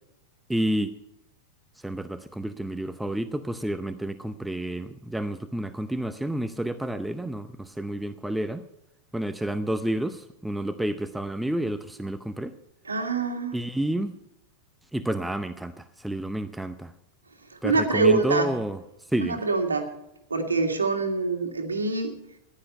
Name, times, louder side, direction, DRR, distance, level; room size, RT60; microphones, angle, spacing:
voice 1, 0.5-0.9 1.8-8.6 9.1-12.5 13.5-14.2 14.9-16.9 17.6-18.8 19.1-19.4, right 1 dB, 5° right, 10 dB, 0.7 m, -30 dB
voice 2, 12.9-13.6 17.6-18.5 19.2-19.9 20.3-22.1, right 4 dB, 75° right, 5 dB, 2.0 m, -25 dB
15.0 x 10.5 x 5.5 m, 0.86 s
figure-of-eight pair, 90°, 0 cm